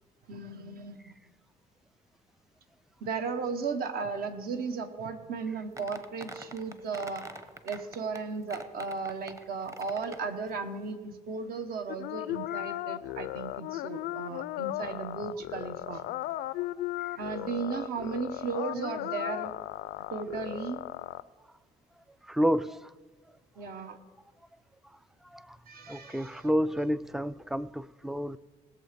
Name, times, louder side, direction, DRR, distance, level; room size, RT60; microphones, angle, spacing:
voice 1, 0.3-1.1 3.0-7.2 7.6-16.0 17.2-19.5 20.1-20.8 23.6-24.0 25.7-26.5, right 5 dB, 60° right, 1.5 m, -35 dB
sound 1, 5.8-8.2 8.5-10.3, right 1 dB, 20° right, 1.0 m, -44 dB
sound 2, 11.9-21.2, left 16 dB, 80° left, 0.4 m, -36 dB
voice 2, 22.3-22.8 25.3-25.6 25.9-28.4, equal, ahead, 0.3 m, -29 dB
19.0 x 7.2 x 5.3 m
cardioid pair, 110°, 17 cm